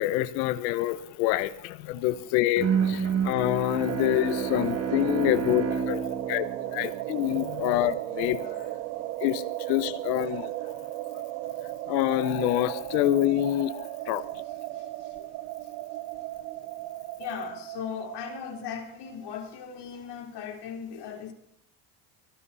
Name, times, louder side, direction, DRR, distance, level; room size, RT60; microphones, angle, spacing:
voice 1, 0.0-6.5 6.7-8.4 9.2-10.5 11.9-14.2, left 14 dB, 90° left, 1.3 m, -26 dB
Bowed string instrument, 2.6-7.6, right 6 dB, 30° right, 2.3 m, -30 dB
sound 1, 3.9-19.3, right 16 dB, 85° right, 1.1 m, -36 dB
voice 2, 5.8-6.4 6.7-6.8 7.5-7.8 8.4-9.3 10.7-11.0 14.4-15.2 15.6-15.7 17.2-21.3, left 8 dB, 55° left, 3.8 m, -40 dB
24.0 x 12.0 x 4.2 m
supercardioid pair, 115°, 49 cm